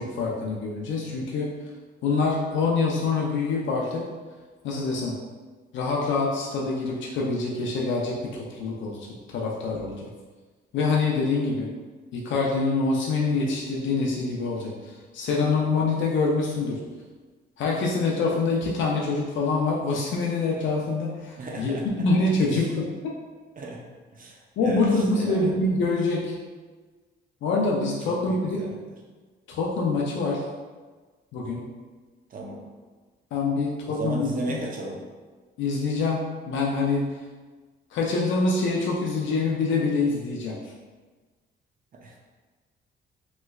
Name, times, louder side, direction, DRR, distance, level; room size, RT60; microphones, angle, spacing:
voice 1, 0.0-1.5 2.0-4.0 4.6-5.1 5.7-9.0 9.3-10.1 10.7-11.7 12.1-16.8 17.6-23.1 24.6-26.3 27.4-28.6 29.5-30.4 31.3-31.6 33.3-34.6 35.6-37.0 37.9-40.5, left 3 dB, 70° left, -3 dB, 0.5 m, -25 dB
voice 2, 21.4-21.8 22.5-22.7 23.6-23.8 24.1-25.5 28.1-28.7 32.3-32.6 33.8-35.0 42.0-42.2, right 2 dB, 45° right, -1 dB, 0.6 m, -35 dB
3.1 x 3.0 x 2.3 m, 1.4 s
cardioid pair, 90°, 20 cm